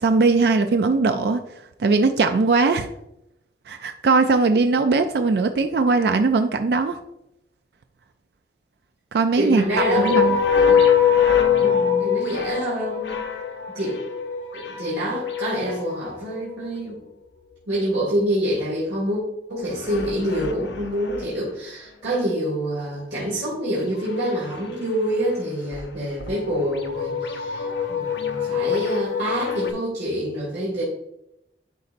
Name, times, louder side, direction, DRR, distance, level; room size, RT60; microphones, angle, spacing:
voice 1, 0.0-1.4 1.8-2.9 3.7-7.0 9.1-10.4, right 3 dB, 65° right, 8 dB, 0.4 m, -20 dB
voice 2, 9.3-10.8 11.6-13.2 13.7-14.0 14.5-17.0 17.7-19.2 19.5-30.8, right 1 dB, 85° right, -7 dB, 2.1 m, -26 dB
sound 1, 9.8-16.7 19.7-21.3 24.0-24.7 25.0-25.3 25.7-25.8 26.2-29.7, left 7 dB, 85° left, 0.7 m, -23 dB
10.5 x 4.0 x 2.6 m, 0.83 s
head